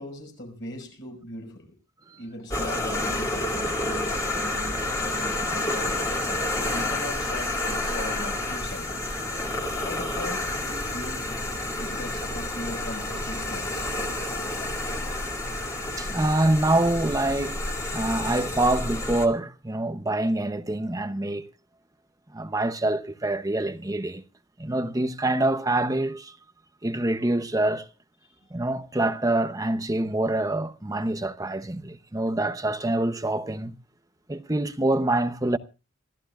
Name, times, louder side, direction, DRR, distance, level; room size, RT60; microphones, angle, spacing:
voice 1, 0.0-1.7 2.2-6.0 6.6-9.2 9.8-11.3 11.7-13.9 28.2-28.4, left 1 dB, 60° left, 5.8 m, -39 dB
sound 1, 2.5-19.3, left 2 dB, 15° left, 2.1 m, -29 dB
voice 2, 16.0-21.5 22.3-24.2 24.6-26.3 26.8-27.9 28.5-33.7 34.3-35.6, right 2 dB, 15° right, 0.8 m, -26 dB
27.0 x 14.0 x 2.4 m
head